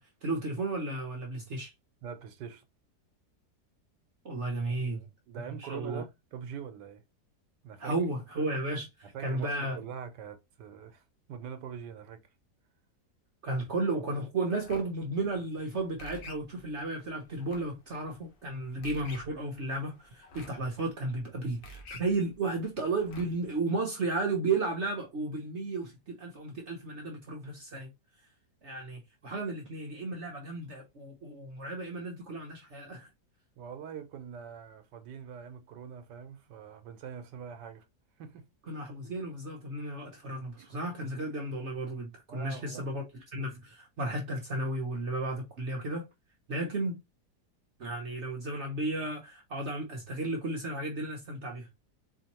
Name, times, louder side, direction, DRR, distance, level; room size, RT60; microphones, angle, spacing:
voice 1, 0.2-1.7 4.2-5.0 5.6-6.0 7.8-9.8 13.4-27.9 28.6-33.1 38.7-43.0 43.3-46.1 46.5-47.0 47.8-51.7, right 2 dB, 50° right, 0.9 m, -34 dB
voice 2, 2.0-2.6 4.6-7.0 7.6-8.0 9.1-11.0 11.3-12.2 33.6-37.8 38.2-38.5 40.6-40.7 42.3-42.9, right 7 dB, 90° right, 1.4 m, -44 dB
sound 1, 14.6-23.5, left 1 dB, 80° left, 1.6 m, -51 dB
4.3 x 2.8 x 2.9 m
omnidirectional pair, 1.8 m